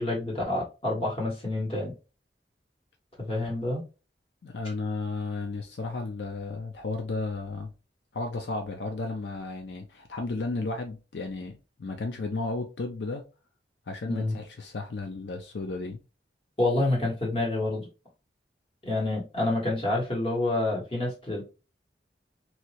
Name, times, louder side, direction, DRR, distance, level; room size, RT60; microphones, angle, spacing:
voice 1, 0.0-1.9 3.2-3.8 14.1-14.3 16.6-17.9 18.8-21.4, left 2 dB, 30° left, 1.5 m, -28 dB
voice 2, 4.4-7.7 8.1-13.2 13.9-16.0, left 3 dB, 75° left, 0.5 m, -33 dB
3.1 x 2.7 x 2.8 m
head